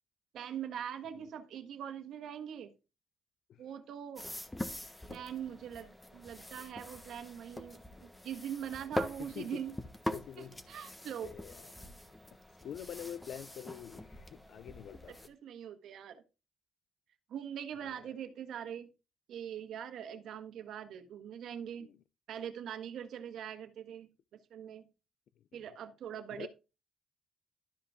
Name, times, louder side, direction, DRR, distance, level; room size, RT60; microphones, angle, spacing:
voice 1, 0.3-2.7 3.6-4.3 5.1-9.8 10.4-11.3 15.1-16.2 17.3-18.9 19.3-21.9 22.3-24.9 25.5-26.5, right 9 dB, 75° right, 1.4 m, -42 dB
sound 1, 4.2-15.3, left 1 dB, 10° left, 1.3 m, -43 dB
voice 2, 10.1-10.5 10.9-11.0 11.2-11.7 12.6-15.1 17.8-18.0 21.8-21.9 26.4-26.5, left 9 dB, 70° left, 0.4 m, -45 dB
12.5 x 5.3 x 3.6 m
cardioid pair, 90°, 0 cm